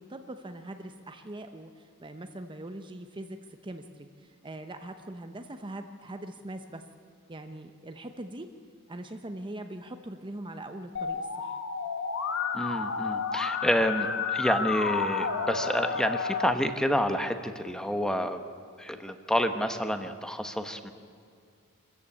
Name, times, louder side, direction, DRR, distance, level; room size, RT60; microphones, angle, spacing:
voice 1, 0.0-3.4 3.6-6.8 7.3-8.5 8.9-11.6, right 1 dB, 20° right, 7 dB, 0.8 m, -41 dB
Musical instrument, 10.9-16.5, left 5 dB, 60° left, 1.4 m, -31 dB
voice 2, 12.5-18.4 18.8-20.9, equal, 5° left, 7 dB, 1.0 m, -29 dB
25.5 x 14.0 x 8.6 m, 2.2 s
head